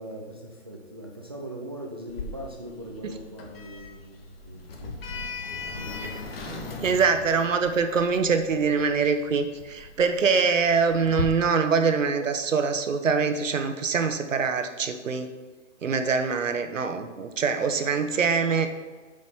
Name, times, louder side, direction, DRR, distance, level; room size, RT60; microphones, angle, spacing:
voice 1, 0.0-4.9 5.7-6.4, right 1 dB, 20° right, -1 dB, 0.4 m, -40 dB
Sliding door, 2.1-11.2, left 3 dB, 50° left, 1.4 m, -39 dB
voice 2, 6.4-15.3 15.8-18.7, right 5 dB, 75° right, 8 dB, 1.1 m, -24 dB
7.9 x 5.2 x 5.6 m, 1.3 s
hypercardioid pair, 150°, 38 cm